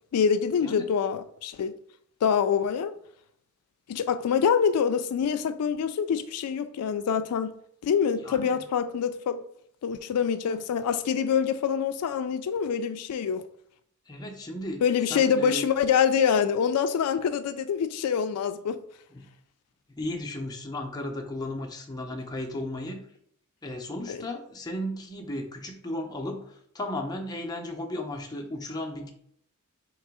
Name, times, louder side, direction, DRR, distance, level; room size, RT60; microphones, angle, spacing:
voice 1, 0.1-1.7 2.2-2.9 3.9-7.5 7.8-9.4 9.8-13.4 14.8-18.8 24.1-24.2, left 7 dB, 90° left, 0.3 m, -25 dB
voice 2, 8.2-8.6 14.1-14.8 15.1-15.7 19.1-19.2 20.0-23.0 23.6-29.1, left 1 dB, 20° left, 0.6 m, -35 dB
3.6 x 2.9 x 4.8 m
head